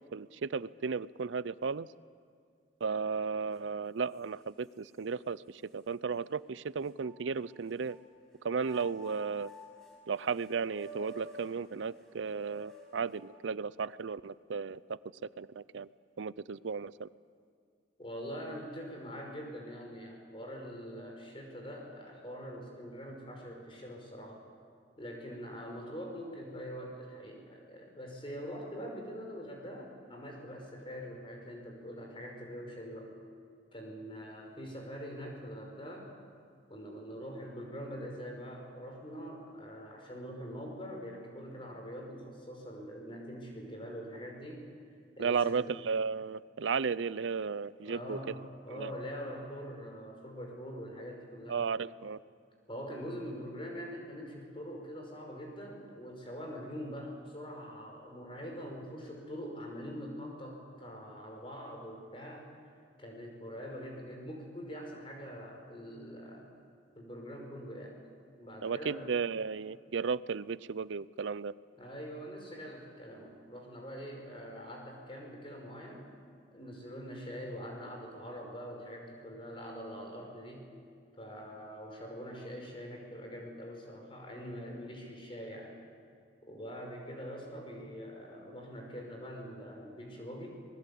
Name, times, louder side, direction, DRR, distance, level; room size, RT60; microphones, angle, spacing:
voice 1, 0.1-1.9 2.8-8.0 8.4-9.5 10.1-15.0 15.4-15.9 16.2-17.1 45.2-48.2 48.7-48.9 51.5-52.2 68.6-71.5, right 5 dB, 85° right, 19 dB, 0.5 m, -34 dB
sound 1, 3.5-3.6 4.1-5.0 5.7-5.8 6.8-8.0 8.6-13.5, right 1 dB, ahead, 5.5 m, -52 dB
voice 2, 18.0-24.4 25.0-33.1 33.7-36.1 36.7-44.7 45.2-45.7 47.8-51.7 52.7-62.5 63.0-66.5 67.0-68.0 68.4-69.1 71.8-76.0 76.5-80.6 81.1-85.8 86.4-90.5, equal, 30° left, 1 dB, 5.3 m, -44 dB
26.5 x 21.0 x 8.5 m, 2.2 s
head